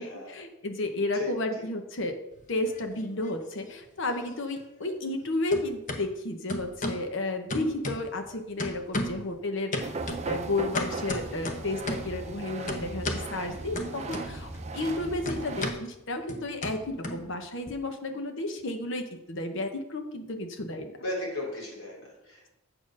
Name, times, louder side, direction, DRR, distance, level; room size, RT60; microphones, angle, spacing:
voice 1, 0.0-2.2 2.5-9.9 10.3-20.9, left 2 dB, 65° left, 6 dB, 1.0 m, -32 dB
sound 1, 2.4-3.3 3.6-5.2 5.5-6.0 6.5-7.1 7.5-8.3 8.6-9.3 9.7-12.2 12.7-13.3 13.7-14.6 14.8-17.7, left 1 dB, 40° left, 0.9 m, -35 dB
sound 2, 9.8-15.7, right 3 dB, 35° right, 0.6 m, -37 dB
voice 2, 21.0-22.5, left 2 dB, 80° left, -3 dB, 3.4 m, -35 dB
7.9 x 4.4 x 6.1 m, 0.88 s
head